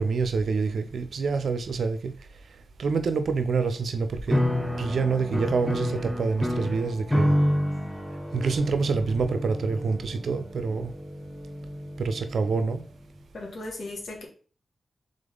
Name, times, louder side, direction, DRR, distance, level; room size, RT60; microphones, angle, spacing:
voice 1, 0.0-2.1 2.8-4.4 4.8-7.3 8.3-10.9 12.0-12.8, right 4 dB, 75° right, 9 dB, 0.5 m, -26 dB
sound 1, 4.3-12.6, equal, ahead, 0.9 m, -29 dB
voice 2, 13.3-14.3, left 2 dB, 70° left, 1 dB, 1.4 m, -36 dB
3.6 x 3.4 x 3.8 m, 0.41 s
supercardioid pair, 40°, 0 cm